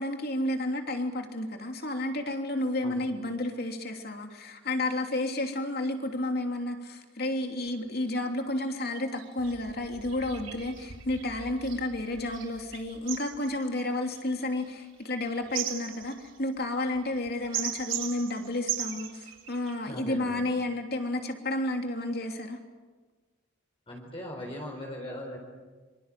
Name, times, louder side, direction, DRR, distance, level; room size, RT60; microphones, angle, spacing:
voice 1, 0.0-22.6, left 1 dB, 50° left, 4 dB, 3.1 m, -31 dB
sound 1, 7.7-7.8 7.9-8.1 8.6-8.7 9.2-19.7, right 9 dB, 85° right, 4.0 m, -39 dB
voice 2, 19.9-20.4 23.9-25.4, left 1 dB, 30° left, -1 dB, 4.3 m, -39 dB
26.0 x 26.0 x 7.6 m, 1.4 s
head